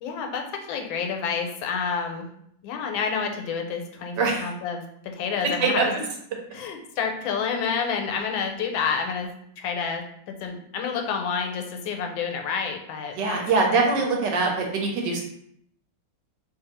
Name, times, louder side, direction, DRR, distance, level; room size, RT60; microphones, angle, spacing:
voice 1, 0.0-2.3 2.6-5.8 6.5-9.3 9.6-13.4 13.7-13.9, left 6 dB, 90° left, 4 dB, 1.4 m, -29 dB
voice 2, 4.2-4.5 5.6-5.9 13.2-15.2, right 4 dB, 70° right, 1 dB, 1.3 m, -23 dB
3.0 x 2.6 x 4.0 m, 0.70 s
omnidirectional pair, 2.1 m